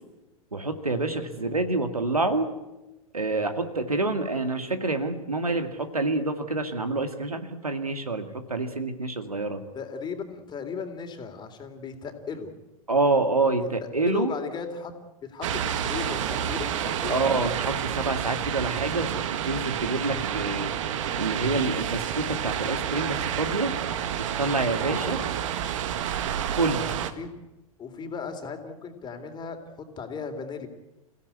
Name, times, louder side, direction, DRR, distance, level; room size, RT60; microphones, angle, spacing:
voice 1, 0.5-2.5 3.1-9.6 12.9-14.3 17.1-20.7 21.2-23.7 24.2-25.2 26.5-26.9, right 3 dB, 85° right, 8 dB, 2.4 m, -27 dB
voice 2, 9.7-12.5 13.6-13.7 14.0-14.9 15.3-17.2 24.9-25.2 27.2-27.4 27.8-30.7, left 6 dB, 25° left, 6 dB, 3.6 m, -36 dB
sound 1, 15.4-27.1, right 9 dB, 60° right, 1.7 m, -29 dB
29.5 x 16.5 x 8.6 m, 1.0 s
figure-of-eight pair, 90°, 18 cm